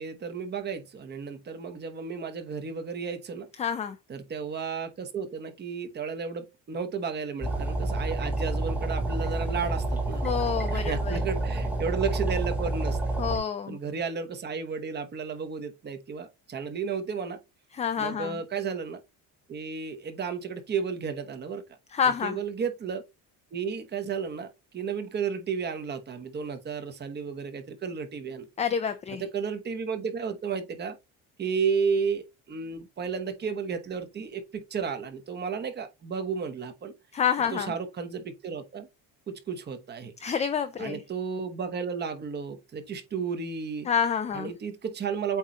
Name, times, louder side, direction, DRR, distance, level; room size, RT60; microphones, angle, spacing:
voice 1, 0.0-3.5 4.1-10.2 10.7-13.0 13.7-17.4 18.0-19.0 19.5-21.8 22.0-23.0 23.5-28.5 29.2-31.0 31.4-36.9 37.5-38.9 39.3-40.1 40.8-43.9 44.3-45.4, right 6 dB, 30° right, 1.0 m, -33 dB
voice 2, 3.6-4.0 10.2-11.2 13.2-13.8 17.7-18.4 21.9-22.4 28.6-29.2 37.1-37.7 40.2-41.0 43.9-44.5, left 7 dB, 20° left, 0.4 m, -28 dB
sound 1, 7.4-13.4, right 2 dB, 5° right, 1.3 m, -29 dB
8.2 x 3.1 x 3.9 m
cardioid pair, 165°, 35 cm